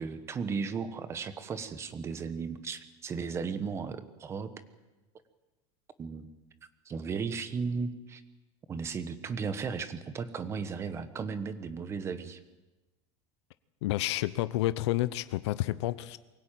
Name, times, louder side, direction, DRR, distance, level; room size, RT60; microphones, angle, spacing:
voice 1, 0.0-4.5 6.0-6.3 6.8-8.2 8.7-12.4, right 5 dB, 20° right, 12 dB, 1.2 m, -35 dB
voice 2, 13.8-16.2, left 16 dB, 85° left, 15 dB, 0.9 m, -30 dB
23.5 x 17.0 x 9.1 m, 1.1 s
cardioid pair, 175°, 14 cm